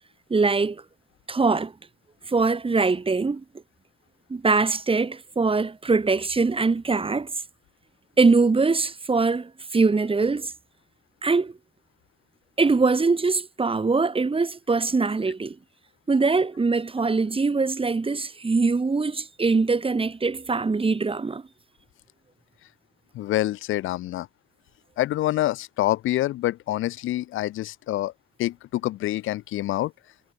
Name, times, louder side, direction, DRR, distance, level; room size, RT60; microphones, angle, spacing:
voice 1, 0.3-0.8 1.3-1.7 2.3-3.4 4.3-7.3 8.2-10.5 11.2-11.5 12.6-15.6 16.1-21.4, right 4 dB, 25° right, 6.1 m, -22 dB
voice 2, 23.1-24.3 25.0-28.1 28.4-29.9, left 15 dB, 85° left, 6.8 m, -26 dB
cardioid pair, 90°, 20 cm